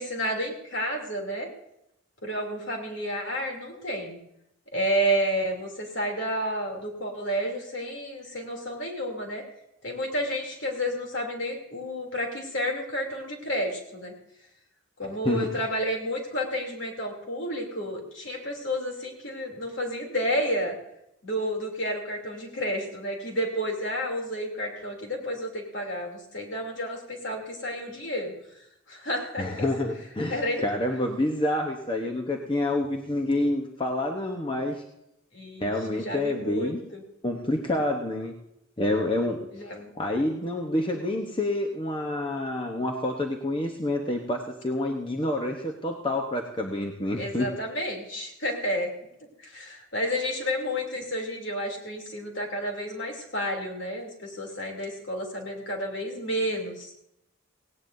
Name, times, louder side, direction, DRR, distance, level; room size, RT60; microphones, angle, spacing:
voice 1, 0.0-1.5 2.2-4.2 4.7-9.4 9.8-14.1 15.0-20.8 21.2-28.3 28.9-29.5 30.3-30.6 35.3-37.0 39.5-39.9 47.2-48.9 49.4-56.9, equal, 60° left, 1 dB, 3.0 m, -31 dB
voice 2, 15.2-15.6 29.4-34.8 35.6-36.8 37.2-38.3 38.8-39.5 39.9-47.5, left 1 dB, 25° left, 2 dB, 0.9 m, -28 dB
18.0 x 17.5 x 2.7 m, 0.79 s
head